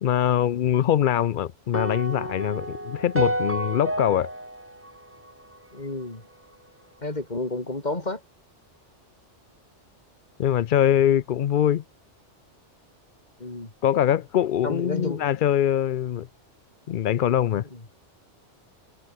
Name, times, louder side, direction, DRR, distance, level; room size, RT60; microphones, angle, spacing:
voice 1, 0.0-4.3 10.4-11.8 13.8-16.3 16.9-17.6, left 10 dB, 55° left, 0.6 m, -23 dB
sound 1, 1.7-6.0, right 1 dB, 10° right, 2.2 m, -30 dB
voice 2, 5.7-6.2 7.0-8.2 13.4-13.7 14.6-15.2 17.7-17.8, left 2 dB, 35° left, 3.2 m, -30 dB
omnidirectional pair, 1.2 m